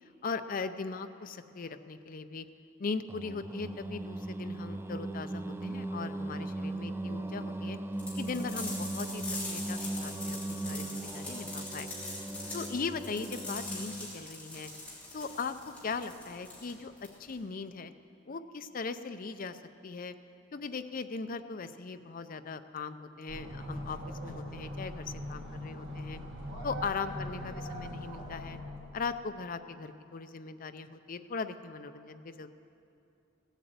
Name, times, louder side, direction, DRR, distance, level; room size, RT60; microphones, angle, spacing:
voice 1, 0.2-2.5 2.8-7.8 8.1-11.9 12.5-14.7 15.1-16.9 17.2-17.9 18.3-19.6 19.8-20.1 20.5-26.2 26.6-28.6 28.9-32.5, left 4 dB, 45° left, 10 dB, 0.5 m, -39 dB
Singing, 3.1-14.2, right 2 dB, 10° right, 0.3 m, -38 dB
sound 1, 8.0-17.4, left 2 dB, 5° left, 3.2 m, -42 dB
sound 2, 23.3-29.1, equal, 60° right, 2.7 m, -41 dB
16.0 x 8.2 x 7.9 m, 2.7 s
head